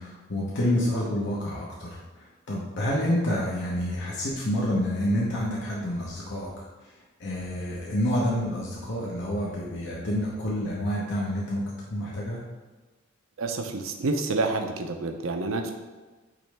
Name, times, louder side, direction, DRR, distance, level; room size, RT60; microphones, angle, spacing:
voice 1, 0.0-6.6 7.2-11.6 11.9-12.4, left 1 dB, 60° left, -5 dB, 1.0 m, -28 dB
voice 2, 13.4-15.7, right 3 dB, 70° right, 4 dB, 0.6 m, -28 dB
8.6 x 3.2 x 3.4 m, 1.3 s
head